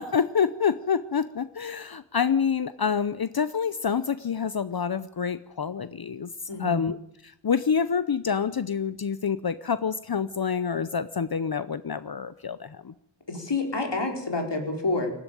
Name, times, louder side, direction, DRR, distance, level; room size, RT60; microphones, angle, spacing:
voice 1, 0.0-6.3 6.6-7.0 7.2-12.9, left 6 dB, 60° left, 14 dB, 0.8 m, -27 dB
voice 2, 6.5-6.8 13.3-15.1, left 3 dB, 75° left, 3 dB, 4.6 m, -28 dB
19.5 x 15.0 x 9.3 m, 0.76 s
wide cardioid pair, 60°, 42 cm